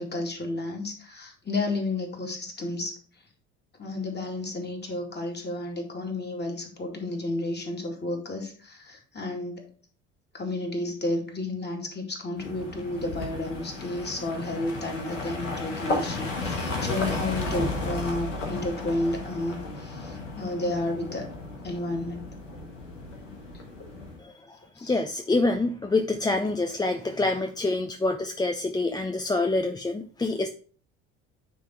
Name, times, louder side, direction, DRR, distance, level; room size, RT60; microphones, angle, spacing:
voice 1, 0.0-2.9 3.8-9.7 10.3-21.3 21.6-22.2 24.8-24.9, left 2 dB, 30° left, 2 dB, 2.4 m, -32 dB
sound 1, 12.4-24.2, left 2 dB, 85° left, 1.4 m, -34 dB
voice 2, 24.2-30.5, left 2 dB, 10° left, 5 dB, 0.6 m, -26 dB
9.4 x 3.5 x 4.5 m, 0.42 s
hypercardioid pair, 60°, 36 cm